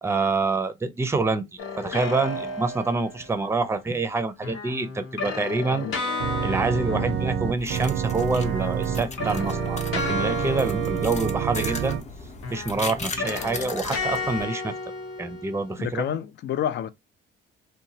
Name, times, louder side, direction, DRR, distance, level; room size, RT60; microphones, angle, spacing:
voice 1, 0.0-5.9 6.4-12.0 12.5-14.7 15.2-16.1, right 3 dB, 15° right, 0.5 m, -26 dB
sound 1, 1.6-3.5 4.4-8.1 8.4-12.0 12.4-15.9, left 3 dB, 85° left, 1.0 m, -33 dB
Organ, 6.2-12.0, right 9 dB, 70° right, 0.4 m, -28 dB
voice 2, 6.8-7.2 15.8-16.9, left 10 dB, 65° left, 0.5 m, -29 dB
spoon on concrete, 7.6-14.4, left 3 dB, 35° left, 0.7 m, -37 dB
2.9 x 2.1 x 2.7 m
cardioid pair, 90°, 20 cm